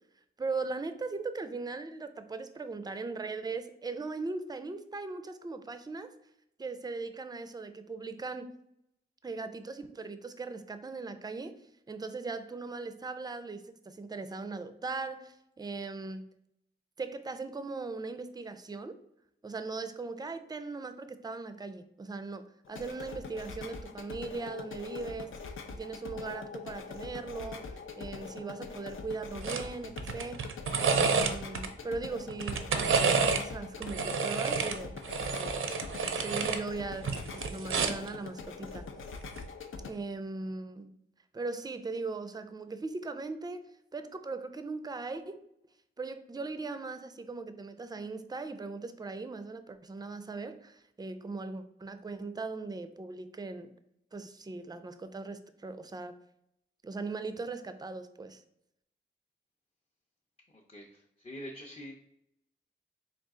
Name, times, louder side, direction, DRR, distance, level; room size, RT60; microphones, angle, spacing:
voice 1, 0.4-6.1 6.6-8.5 9.2-11.5 11.9-16.3 17.0-19.0 19.4-30.5 30.9-35.7 36.1-38.9 39.8-40.9 41.3-43.6 43.9-45.4 46.0-53.7 54.1-56.1 56.8-58.4, right 3 dB, 20° right, 10 dB, 0.4 m, -39 dB
sound 1, 22.7-39.9, left 5 dB, 75° left, 0.5 m, -43 dB
sound 2, 29.4-29.7 30.0-31.7 32.3-33.4 33.8-36.6 37.0-38.1 39.2-39.5, right 5 dB, 80° right, 0.5 m, -29 dB
voice 2, 60.5-61.9, equal, 30° left, -1 dB, 0.6 m, -45 dB
3.8 x 2.4 x 3.6 m, 0.77 s
cardioid pair, 65°, 21 cm